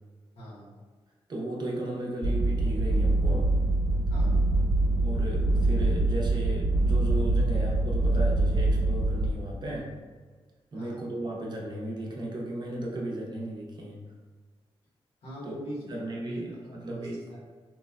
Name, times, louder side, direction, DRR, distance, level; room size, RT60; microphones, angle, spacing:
voice 1, 0.4-0.7 4.1-4.5 5.9-6.1 10.7-11.1 15.2-17.4, equal, 85° left, -6 dB, 1.0 m, -42 dB
voice 2, 1.3-3.6 5.0-10.0 10.7-14.0 15.4-15.6 15.9-17.4, right 1 dB, 45° right, -3 dB, 0.6 m, -35 dB
sound 1, 2.2-9.3, right 2 dB, 15° left, 0.8 m, -24 dB
3.0 x 2.1 x 2.3 m, 1.5 s
cardioid pair, 110°, 10 cm